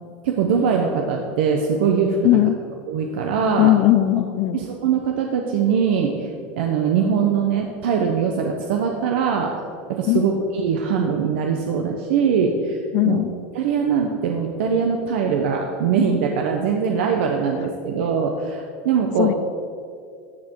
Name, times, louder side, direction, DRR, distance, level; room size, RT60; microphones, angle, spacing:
voice 1, 0.2-2.4 2.9-3.7 4.5-6.3 6.5-9.5 9.9-12.8 13.0-13.2 13.5-19.3, right 6 dB, 75° right, 2 dB, 1.1 m, -22 dB
voice 2, 2.2-2.6 3.6-4.6 10.1-10.4 12.9-13.3 19.2-19.3, left 14 dB, 50° left, 15 dB, 0.5 m, -18 dB
14.5 x 7.8 x 4.7 m, 2.3 s
supercardioid pair, 155°, 6 cm